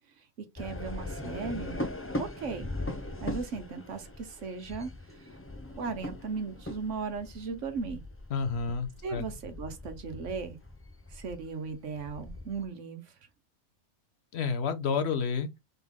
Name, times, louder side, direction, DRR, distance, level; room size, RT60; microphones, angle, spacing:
sound 1, 0.5-12.7, left 1 dB, 20° left, 0.4 m, -40 dB
voice 1, 0.5-1.9 2.2-2.7 3.2-5.3 5.8-8.0 9.0-10.6 11.1-13.0, right 4 dB, 65° right, 1.3 m, -37 dB
voice 2, 8.3-9.3 14.3-15.5, left 5 dB, 55° left, 1.1 m, -30 dB
4.0 x 3.6 x 3.5 m
omnidirectional pair, 1.4 m